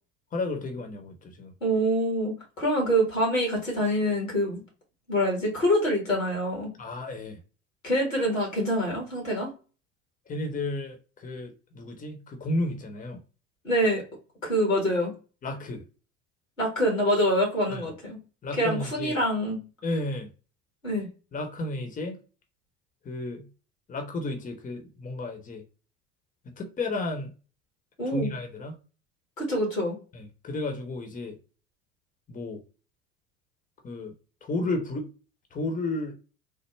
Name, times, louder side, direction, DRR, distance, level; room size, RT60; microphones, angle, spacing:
voice 1, 0.3-1.5 6.8-7.4 10.3-13.2 15.4-15.8 17.7-17.8 18.4-19.2 19.8-20.3 21.3-22.2 23.0-23.5 23.9-25.6 26.4-27.3 28.1-28.7 30.1-31.4 32.3-32.6 33.8-34.1 34.4-35.1 35.5-36.1, left 2 dB, 20° left, 4 dB, 0.9 m, -32 dB
voice 2, 1.6-4.6 5.1-6.7 7.8-9.5 13.6-14.0 14.4-15.1 16.6-18.2 18.5-19.6 20.8-21.1 28.0-28.3 29.4-30.0, equal, 90° left, 0 dB, 1.6 m, -25 dB
3.3 x 2.1 x 3.2 m, 0.34 s
figure-of-eight pair, 70°, 38 cm